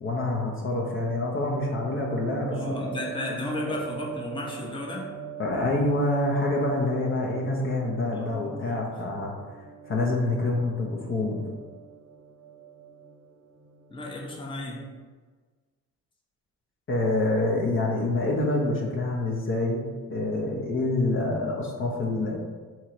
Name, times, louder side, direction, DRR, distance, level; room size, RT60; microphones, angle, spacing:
voice 1, 0.0-2.6 3.7-3.8 5.4-9.3 9.9-11.4 16.9-19.8 20.1-22.4, left 2 dB, 45° left, -2 dB, 0.8 m, -26 dB
sound 1, 1.4-15.1, right 6 dB, 40° right, 0.7 m, -43 dB
voice 2, 2.5-5.1 8.1-9.0 13.9-14.8, left 1 dB, 15° left, -2 dB, 0.9 m, -34 dB
3.7 x 2.9 x 4.5 m, 1.4 s
cardioid pair, 90°, 30 cm